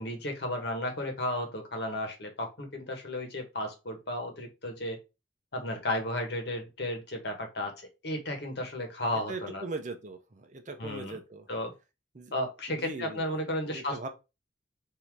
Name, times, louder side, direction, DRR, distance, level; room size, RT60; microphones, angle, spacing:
voice 1, 0.0-5.0 5.5-9.6 10.8-11.2 11.5-11.7 12.3-14.1, left 1 dB, 60° left, 1.2 m, -34 dB
voice 2, 9.1-11.5 12.1-12.3 12.7-13.3 13.7-14.1, right 3 dB, 40° right, 0.6 m, -40 dB
3.7 x 2.7 x 4.5 m
head